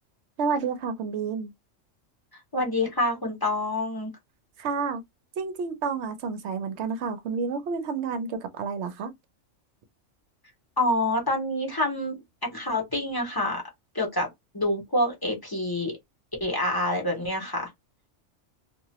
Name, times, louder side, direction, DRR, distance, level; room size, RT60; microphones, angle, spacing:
voice 1, 0.4-1.5 4.6-5.0 5.4-9.1, right 5 dB, 65° right, 0.8 m, -30 dB
voice 2, 2.5-4.1 10.8-13.6 13.9-14.3 14.5-16.0 16.4-17.7, left 1 dB, 20° left, 0.9 m, -27 dB
2.8 x 2.4 x 2.8 m
omnidirectional pair, 1.3 m